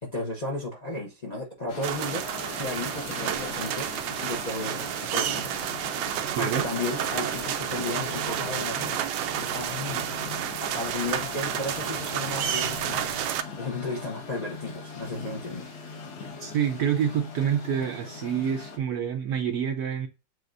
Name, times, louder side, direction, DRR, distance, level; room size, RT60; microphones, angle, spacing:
voice 1, 0.0-3.9 4.2-5.5 6.4-10.0 10.6-13.3 13.6-15.7, left 2 dB, 35° left, 0.7 m, -34 dB
sound 1, 1.7-18.8, left 4 dB, 60° left, 1.4 m, -40 dB
sound 2, 1.8-13.4, right 10 dB, 90° right, 1.3 m, -30 dB
voice 2, 6.4-6.7 16.4-20.1, right 8 dB, 70° right, 1.0 m, -27 dB
7.8 x 2.7 x 2.5 m
omnidirectional pair, 2.0 m